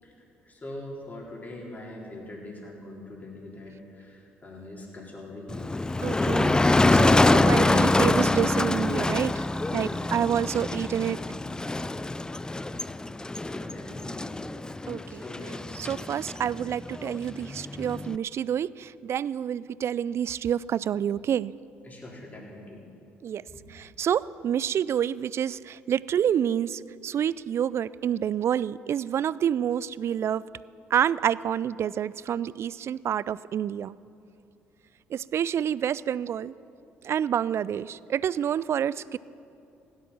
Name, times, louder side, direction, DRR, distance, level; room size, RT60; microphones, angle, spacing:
voice 1, 0.0-5.5 9.7-10.1 13.4-14.4 14.7-15.5 21.8-22.8 23.5-23.6, left 1 dB, 30° left, -3 dB, 4.2 m, -43 dB
Motor vehicle (road), 5.5-18.2, left 2 dB, 15° left, 0.5 m, -25 dB
voice 2, 6.0-6.5 6.9-9.4 9.7-11.2 14.9-15.2 15.7-21.5 23.2-23.4 23.7-30.4 30.9-34.0 35.1-36.5 37.0-39.2, right 9 dB, 50° right, 20 dB, 0.4 m, -28 dB
16.5 x 12.0 x 5.8 m, 2.6 s
hypercardioid pair, 55°, 6 cm